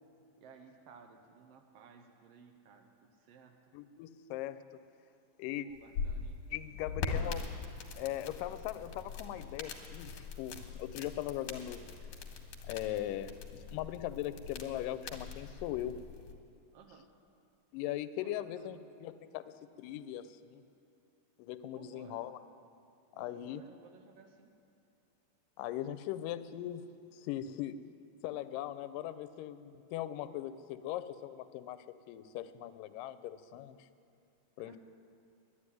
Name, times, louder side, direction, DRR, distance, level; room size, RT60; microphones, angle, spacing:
voice 1, 0.4-3.6 5.6-6.4 16.7-17.1 18.2-18.8 21.7-22.3 23.1-24.5 34.6-34.8, right 5 dB, 85° right, 5 dB, 1.4 m, -58 dB
voice 2, 3.7-4.6 5.4-5.7 6.5-7.4 8.0-11.8 12.7-16.0 17.7-20.6 21.4-22.4 23.2-23.6 25.6-26.9 27.1-27.8 28.2-33.8 34.6-34.8, left 12 dB, 90° left, 14 dB, 2.2 m, -40 dB
sound 1, 5.7-16.3, left 4 dB, 70° left, 2.5 m, -42 dB
11.0 x 9.9 x 9.7 m, 2.5 s
omnidirectional pair, 3.8 m